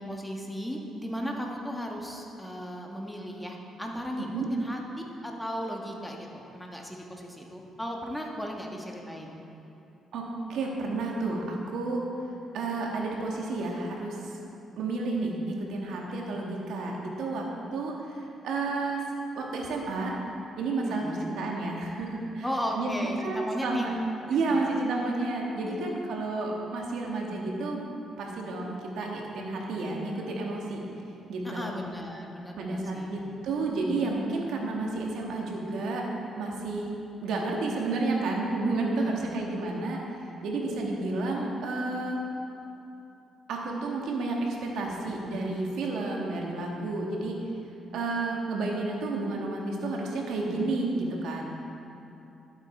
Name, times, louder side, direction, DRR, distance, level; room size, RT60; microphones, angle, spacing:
voice 1, 0.0-9.4 16.2-16.3 20.8-21.3 22.4-23.9 24.5-24.7 25.8-26.0 31.4-33.1 39.0-39.4, equal, 5° left, 0 dB, 1.4 m, -36 dB
voice 2, 10.1-12.0 12.5-14.3 14.8-19.0 19.4-20.1 20.6-22.4 22.7-22.9 23.2-23.9 24.3-27.8 28.2-30.8 31.3-31.8 32.6-36.1 36.3-36.9 37.2-40.0 40.4-42.2 43.5-47.4 47.9-51.4, right 3 dB, 80° right, -1 dB, 1.6 m, -31 dB
11.5 x 8.0 x 4.5 m, 2.9 s
cardioid pair, 90°, 0 cm